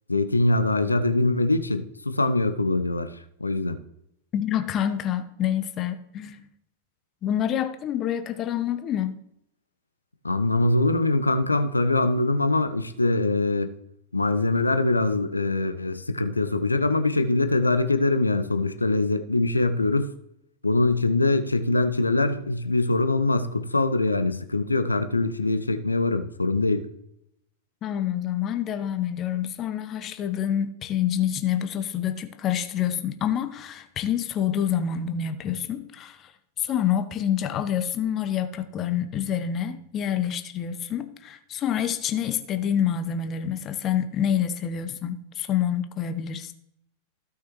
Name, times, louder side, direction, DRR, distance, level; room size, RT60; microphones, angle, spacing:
voice 1, 0.1-3.1 3.4-3.8 10.2-13.7 14.1-20.1 20.6-26.9, left 2 dB, 80° left, 0.7 m, -23 dB
voice 2, 4.3-6.5 7.2-9.2 27.8-36.3 36.6-46.5, left 9 dB, 30° left, 0.8 m, -27 dB
15.5 x 5.8 x 3.1 m
figure-of-eight pair, 90°, 0 cm